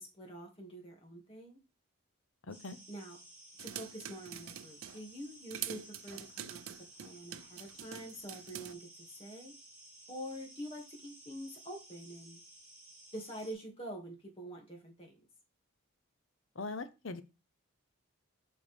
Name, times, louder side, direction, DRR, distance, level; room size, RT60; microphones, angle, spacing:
voice 1, 0.0-1.6 2.9-3.2 3.6-6.6 7.0-9.5 10.1-12.4 13.1-15.1, equal, 25° left, 0 dB, 2.0 m, -46 dB
voice 2, 2.4-2.8 16.6-17.2, left 3 dB, 60° left, 12 dB, 0.7 m, -41 dB
sound 1, 2.5-13.5, right 1 dB, 10° right, 2.2 m, -56 dB
sound 2, 3.6-5.0 5.5-8.7, right 10 dB, 70° right, 0.5 m, -45 dB
7.4 x 5.0 x 3.4 m, 0.29 s
head